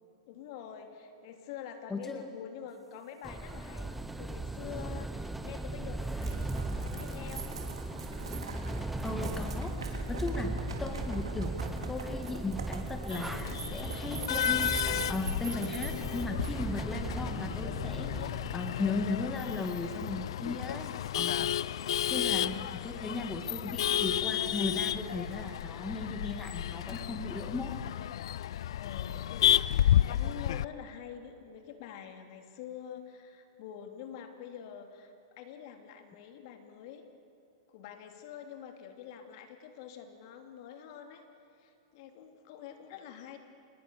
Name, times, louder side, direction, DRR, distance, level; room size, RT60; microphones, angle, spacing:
voice 1, 0.3-7.5 21.5-22.7 28.7-37.1 37.7-41.2 41.6-43.4, left 9 dB, 55° left, 5 dB, 2.9 m, -46 dB
voice 2, 1.9-2.3 9.0-21.5 22.1-27.7, left 3 dB, 10° left, 4 dB, 2.0 m, -37 dB
sound 1, 3.2-18.5, right 2 dB, 5° right, 0.9 m, -37 dB
sound 2, 6.2-16.8, right 7 dB, 90° right, 3.8 m, -43 dB
Male speech man speaking / Laughter / Chatter, 13.1-30.6, left 11 dB, 70° left, 0.5 m, -32 dB
27.5 x 21.0 x 7.0 m, 2.9 s
hypercardioid pair, 130°, 3 cm